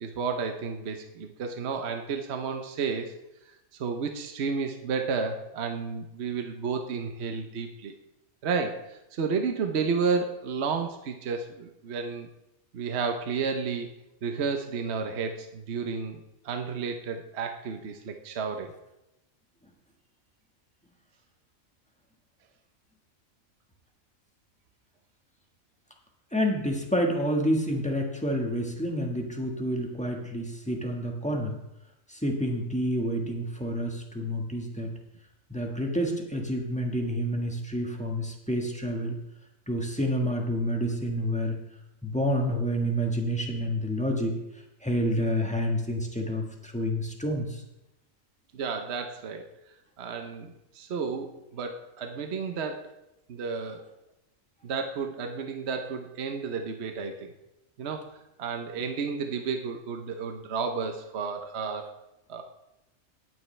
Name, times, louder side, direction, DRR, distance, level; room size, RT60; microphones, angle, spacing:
voice 1, 0.0-3.1 3.8-7.9 8.4-12.3 12.7-13.9 14.2-16.2 16.4-18.7 48.5-49.5 50.0-52.9 53.3-53.9 54.6-57.3 57.8-61.9 62.3-62.4, right 5 dB, 55° right, 5 dB, 1.0 m, -32 dB
voice 2, 26.3-31.6 32.1-34.9 35.5-39.2 39.7-41.6 42.0-44.4 44.8-47.6, equal, 5° left, 0 dB, 1.4 m, -28 dB
17.5 x 7.7 x 3.3 m, 0.90 s
omnidirectional pair, 1.4 m